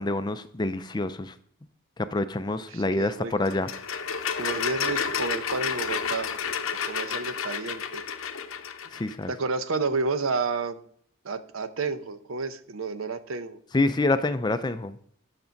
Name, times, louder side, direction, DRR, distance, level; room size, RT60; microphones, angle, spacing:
voice 1, 0.0-1.3 2.0-3.7 8.9-9.3 13.7-15.0, left 2 dB, 20° left, 11 dB, 0.4 m, -27 dB
voice 2, 2.7-3.3 4.3-6.3 6.8-8.0 9.3-10.8 11.2-13.6, right 4 dB, 75° right, 12 dB, 0.7 m, -30 dB
sound 1, 3.5-9.1, left 7 dB, 80° left, 0.8 m, -31 dB
9.7 x 6.0 x 5.2 m, 0.62 s
head